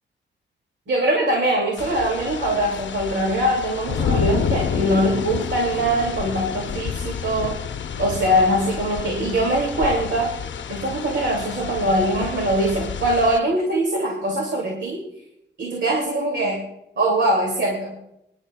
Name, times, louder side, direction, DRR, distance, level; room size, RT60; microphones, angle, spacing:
voice 1, 0.9-7.6 8.0-10.3 10.7-15.0 15.6-16.6 17.0-17.9, right 1 dB, 80° right, -1 dB, 2.4 m, -22 dB
sound 1, 1.8-13.4, left 7 dB, 80° left, 0.6 m, -29 dB
26.5 x 10.5 x 2.3 m, 0.83 s
wide cardioid pair, 155°, 19 cm